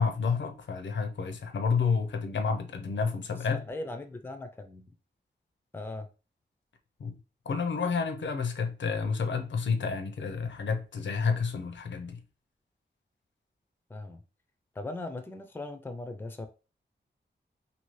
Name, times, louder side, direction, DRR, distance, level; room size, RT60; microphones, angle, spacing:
voice 1, 0.0-3.6 7.0-7.1 7.5-12.2, left 5 dB, 75° left, 0.6 m, -30 dB
voice 2, 3.5-4.9 5.7-6.1 13.9-14.2 14.7-16.5, left 2 dB, 10° left, 0.4 m, -39 dB
2.7 x 2.7 x 3.1 m
wide cardioid pair, 110°, 19 cm